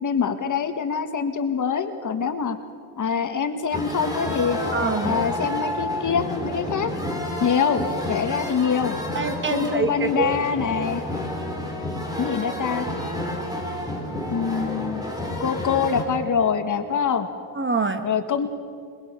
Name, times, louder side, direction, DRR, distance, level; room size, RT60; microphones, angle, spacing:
voice 1, 0.0-2.6 3.0-4.6 5.0-6.9 7.4-8.9 9.5-11.0 12.2-12.9 14.3-15.0 15.4-17.3 18.0-18.5, left 6 dB, 40° left, 7 dB, 1.7 m, -24 dB
sound 1, 3.7-16.0, left 1 dB, 10° right, 3.8 m, -30 dB
voice 2, 4.7-5.1 9.1-10.3 17.6-18.1, right 4 dB, 25° right, 9 dB, 1.3 m, -25 dB
22.0 x 22.0 x 6.9 m, 2.2 s
cardioid pair, 120°, 45 cm